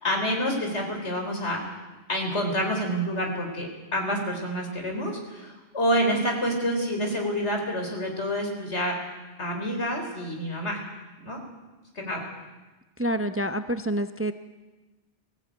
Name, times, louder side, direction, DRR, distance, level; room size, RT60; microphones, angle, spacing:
voice 1, 0.0-1.6 2.1-8.9 9.4-10.8 11.2-11.4 12.0-12.2, equal, 80° left, 2 dB, 4.2 m, -28 dB
voice 2, 13.0-14.3, right 1 dB, 15° right, 10 dB, 0.6 m, -27 dB
20.0 x 15.0 x 9.1 m, 1.2 s
omnidirectional pair, 1.2 m